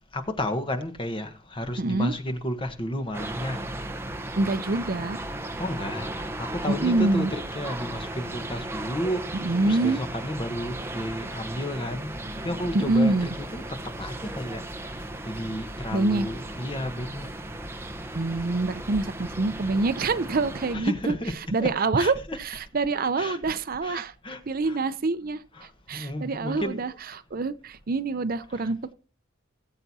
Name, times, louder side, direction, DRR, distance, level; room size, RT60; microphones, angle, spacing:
voice 1, 0.1-3.6 5.6-12.1 12.4-13.6 14.0-14.6 15.2-17.3 20.7-21.7 22.0-22.4 23.2-23.5 23.8-24.8 25.5-25.7 25.9-26.9 28.5-28.7, left 1 dB, 25° left, 1.2 m, -32 dB
voice 2, 1.8-2.1 4.4-5.2 6.7-7.3 9.4-10.0 12.7-13.3 15.9-16.3 18.1-21.2 21.5-24.1 24.5-26.9 27.3-28.9, right 3 dB, 45° right, 0.6 m, -26 dB
sound 1, 3.1-20.8, right 1 dB, 10° right, 0.9 m, -36 dB
18.5 x 7.8 x 2.8 m
head